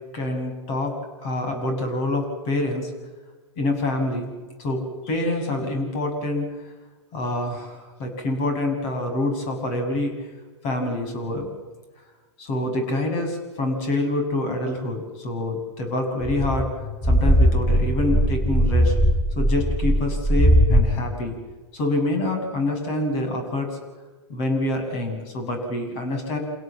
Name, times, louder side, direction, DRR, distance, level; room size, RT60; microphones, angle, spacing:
voice 1, 0.1-0.9 1.2-2.9 3.6-4.3 4.6-6.5 7.1-10.1 10.6-11.5 12.4-16.7 17.0-18.9 19.4-21.4 21.7-23.8 24.3-26.4, left 1 dB, 50° left, 5 dB, 7.4 m, -26 dB
sound 1, 16.2-20.9, equal, 10° left, 4.5 m, -19 dB
28.0 x 17.5 x 7.7 m, 1.3 s
hypercardioid pair, 105°, 15 cm